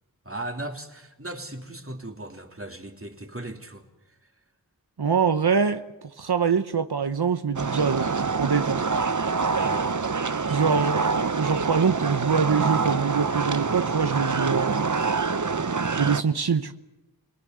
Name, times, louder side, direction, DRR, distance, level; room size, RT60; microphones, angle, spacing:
voice 1, 0.2-4.1 9.5-10.0 10.5-11.0, right 1 dB, 35° right, 4 dB, 3.1 m, -38 dB
voice 2, 5.0-5.8 6.2-8.9 10.5-14.9 16.0-16.7, right 6 dB, 90° right, 9 dB, 0.9 m, -24 dB
sound 1, 7.6-16.2, right 4 dB, 50° right, 0.9 m, -26 dB
28.0 x 19.5 x 9.5 m, 0.99 s
wide cardioid pair, 40°, 38 cm